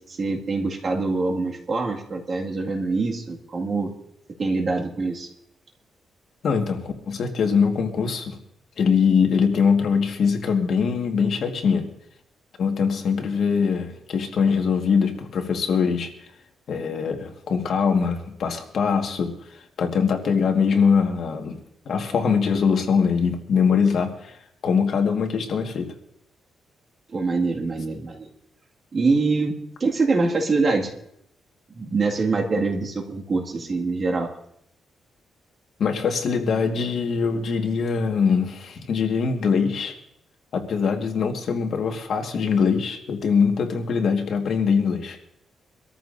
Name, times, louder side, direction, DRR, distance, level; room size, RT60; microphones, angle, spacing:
voice 1, 0.0-3.9 4.4-5.3 27.1-28.3 28.9-29.5 29.8-30.9 31.7-34.3, right 3 dB, 40° right, 0 dB, 2.0 m, -24 dB
voice 2, 6.4-8.4 8.8-11.9 12.6-16.1 16.7-19.3 19.8-21.6 21.8-24.4 24.6-25.9 35.8-39.9 40.5-45.2, left 6 dB, 60° left, 4 dB, 1.7 m, -22 dB
24.5 x 13.5 x 2.7 m, 0.75 s
cardioid pair, 125°, 0 cm